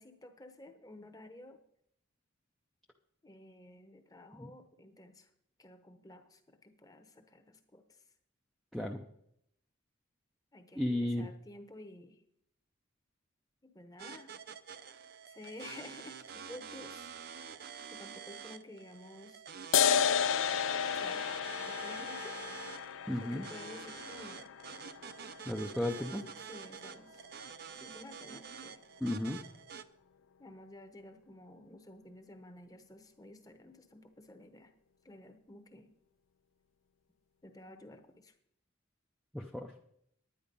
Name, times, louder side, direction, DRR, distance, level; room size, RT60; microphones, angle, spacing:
voice 1, 0.0-1.6 3.2-5.3 5.6-8.0 10.5-12.2 13.6-14.3 15.2-17.1 17.9-19.4 20.9-21.4 21.7-22.3 23.2-24.5 25.8-26.1 26.5-27.3 27.8-28.8 30.4-34.7 35.0-35.9 37.4-38.3, left 1 dB, 15° left, 7 dB, 1.0 m, -52 dB
voice 2, 10.8-11.3 23.1-23.4 25.5-26.3 29.0-29.4 39.3-39.7, left 1 dB, ahead, -1 dB, 0.5 m, -34 dB
sound 1, 14.0-29.8, right 6 dB, 45° right, 0.5 m, -47 dB
sound 2, 19.7-26.7, left 8 dB, 70° left, 0.5 m, -33 dB
10.0 x 9.8 x 5.3 m, 0.73 s
head